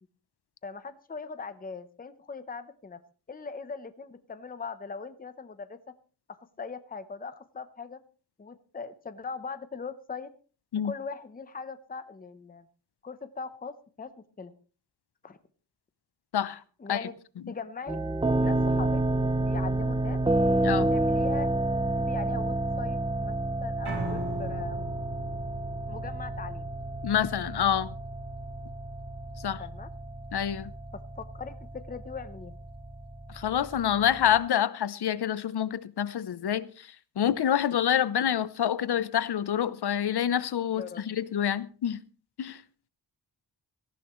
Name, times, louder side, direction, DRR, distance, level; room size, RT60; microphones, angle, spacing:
voice 1, 0.6-3.0 3.3-5.8 6.3-8.0 8.4-10.3 10.8-12.7 13.0-14.1 14.4-14.5 15.2-15.4 16.8-17.1 17.5-18.0 18.4-19.0 19.4-20.2 20.9-21.5 21.9-24.9 25.9-26.7 29.6-29.9 30.9-32.6 40.7-41.0, left 5 dB, 20° left, 0.8 m, -40 dB
sound 1, 17.9-34.4, right 2 dB, 10° right, 0.8 m, -30 dB
Piano, 23.8-30.0, right 1 dB, 60° right, 4.6 m, -41 dB
voice 2, 27.0-27.9 29.4-29.6 30.3-30.7 33.3-36.9 37.2-42.0 42.4-42.6, left 9 dB, 65° left, 0.8 m, -27 dB
18.5 x 14.5 x 3.1 m
wide cardioid pair, 160°, 43 cm